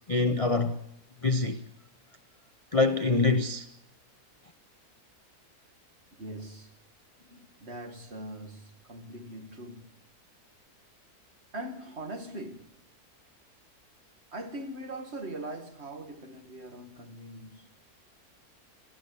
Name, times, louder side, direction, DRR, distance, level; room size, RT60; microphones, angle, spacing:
voice 1, 0.1-0.8 1.2-1.6 2.7-3.7, left 3 dB, 30° left, 0.6 m, -25 dB
voice 2, 6.1-6.7 7.2-9.9 11.5-12.7 14.3-17.7, right 1 dB, 40° right, 2.0 m, -41 dB
28.5 x 13.5 x 8.4 m
omnidirectional pair, 1.7 m